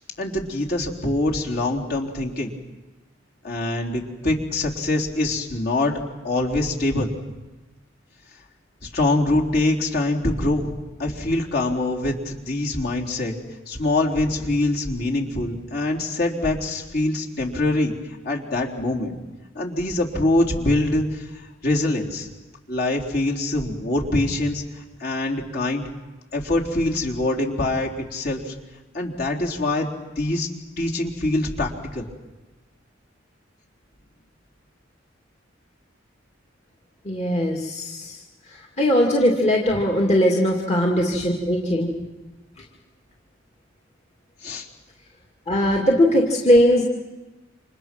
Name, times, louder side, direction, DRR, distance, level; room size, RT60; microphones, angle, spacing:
voice 1, 0.2-2.5 3.4-6.0 6.2-7.1 8.8-13.3 13.7-17.9 18.2-19.2 19.5-22.3 22.7-25.8 26.3-28.5 28.9-30.5 30.8-32.1 44.4-44.7, left 2 dB, 50° left, -1 dB, 3.9 m, -24 dB
voice 2, 37.1-38.2 38.5-41.9 45.5-46.9, equal, 35° left, -1 dB, 2.4 m, -20 dB
29.5 x 27.0 x 6.2 m, 1.1 s
head